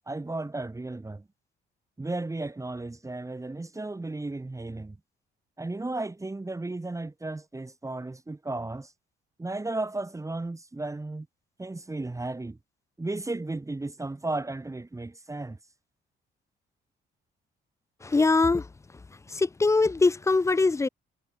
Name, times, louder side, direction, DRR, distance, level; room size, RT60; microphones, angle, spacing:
voice 1, 0.1-1.2 2.0-5.0 5.6-8.9 9.4-11.3 11.6-12.6 13.0-15.6, right 2 dB, 15° right, 2.0 m, -34 dB
voice 2, 18.0-18.7 19.3-20.9, left 3 dB, 15° left, 0.3 m, -22 dB
cardioid pair, 90°, 20 cm